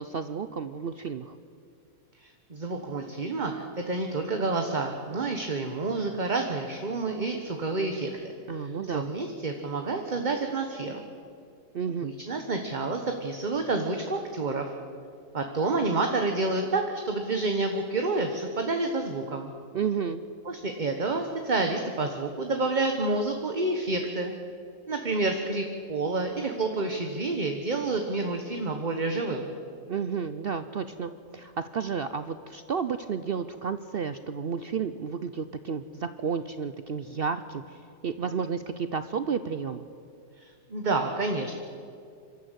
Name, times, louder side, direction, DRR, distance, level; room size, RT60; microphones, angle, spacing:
voice 1, 0.0-1.4 8.5-9.1 11.7-12.2 19.7-20.2 29.9-37.8 38.0-39.9, right 6 dB, 55° right, 11 dB, 0.7 m, -32 dB
voice 2, 2.2-8.3 8.5-11.0 12.0-14.7 15.3-19.5 20.4-24.3 24.9-29.5 40.4-41.6, right 3 dB, 35° right, 4 dB, 1.3 m, -29 dB
25.0 x 13.5 x 8.2 m, 2.4 s
omnidirectional pair, 1.5 m